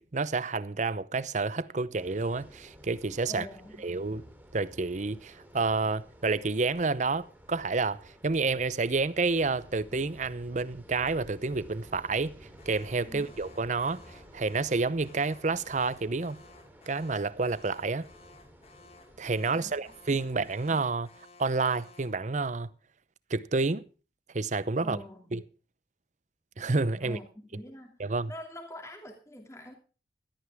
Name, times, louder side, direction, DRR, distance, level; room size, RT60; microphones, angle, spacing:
voice 1, 0.0-3.5 3.8-4.2 4.5-12.4 12.7-16.4 16.9-18.1 19.2-21.1 21.4-22.7 23.3-23.8 24.3-25.0 25.3-25.4 26.6-27.2 28.0-28.3, right 3 dB, 40° right, 0.7 m, -29 dB
sound 1, 1.9-20.7, equal, 10° right, 3.3 m, -53 dB
voice 2, 3.3-3.8 13.1-13.3 19.5-19.9 24.8-25.4 27.0-28.0 28.3-29.7, left 1 dB, 15° left, 2.7 m, -45 dB
Alarm, 12.6-22.3, left 3 dB, 35° left, 2.0 m, -57 dB
17.0 x 13.0 x 3.5 m
head